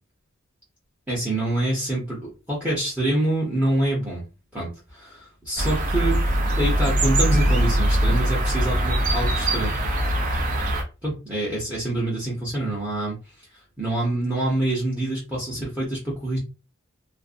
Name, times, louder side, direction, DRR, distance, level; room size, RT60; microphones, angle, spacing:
voice 1, 1.1-4.2 4.5-6.2 6.6-9.7 11.0-13.1 13.8-16.4, right 1 dB, 5° right, -5 dB, 0.8 m, -26 dB
sound 1, 5.6-10.8, right 1 dB, 40° right, 0.5 m, -22 dB
2.5 x 2.1 x 2.5 m, 0.30 s
head